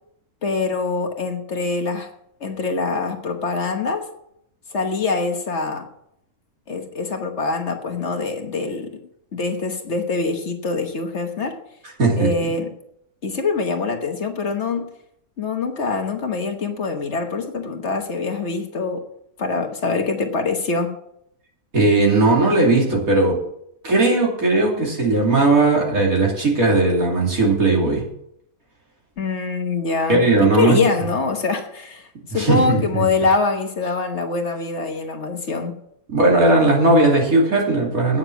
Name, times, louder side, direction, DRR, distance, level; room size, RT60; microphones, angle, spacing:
voice 1, 0.4-2.1 2.4-4.1 4.7-5.8 6.7-9.0 9.3-11.6 12.2-12.7 13.2-14.9 15.4-19.0 19.4-21.0 29.2-35.8, left 4 dB, 50° left, 5 dB, 1.4 m, -24 dB
voice 2, 21.7-23.4 23.8-28.0 30.1-30.8 32.3-33.0 36.1-38.2, right 2 dB, 70° right, -2 dB, 3.3 m, -17 dB
9.0 x 6.7 x 8.0 m, 0.74 s
omnidirectional pair, 1.5 m